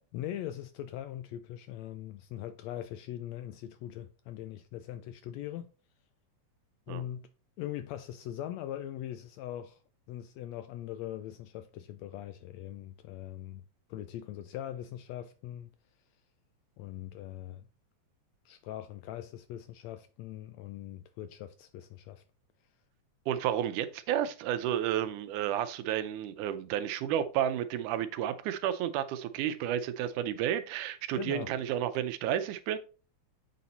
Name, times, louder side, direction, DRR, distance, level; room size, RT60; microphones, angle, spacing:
voice 1, 0.1-5.7 6.9-7.3 7.6-9.8 10.1-13.6 13.9-15.7 16.8-17.6 18.4-22.2 31.1-31.5, left 12 dB, 80° left, 1.6 m, -41 dB
voice 2, 23.3-32.8, right 10 dB, 85° right, 2.2 m, -31 dB
8.5 x 4.2 x 4.0 m
omnidirectional pair, 3.5 m